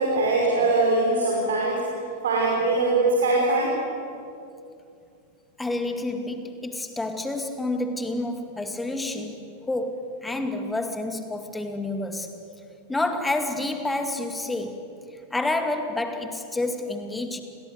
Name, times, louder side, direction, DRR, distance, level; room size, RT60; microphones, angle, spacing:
voice 1, 0.0-1.8 2.2-3.7, right 2 dB, 60° right, -3 dB, 5.3 m, -22 dB
voice 2, 5.6-9.4 9.7-12.3 12.9-14.9 15.3-17.4, left 2 dB, 10° left, 7 dB, 2.3 m, -29 dB
30.0 x 22.5 x 7.9 m, 2.5 s
figure-of-eight pair, 90°, 0 cm